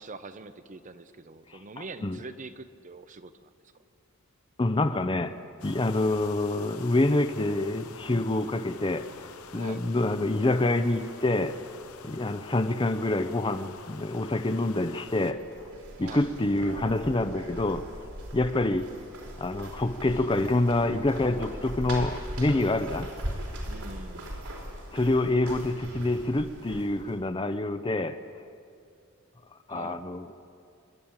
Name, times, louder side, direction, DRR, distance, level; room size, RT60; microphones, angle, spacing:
voice 1, 0.0-3.5 9.5-9.8 16.0-16.3 23.7-24.3 29.7-30.0, right 3 dB, 35° right, 11 dB, 0.7 m, -44 dB
voice 2, 4.6-5.4 5.6-9.1 9.5-11.6 12.0-15.4 16.0-17.9 18.3-18.9 19.4-23.1 24.9-28.2 29.7-30.3, left 2 dB, 20° left, 10 dB, 0.6 m, -26 dB
sound 1, 5.6-15.3, left 6 dB, 75° left, 0.9 m, -47 dB
stairs environment, 15.1-27.2, right 1 dB, 85° right, 4.4 m, -40 dB
28.5 x 11.0 x 8.8 m, 2.4 s
head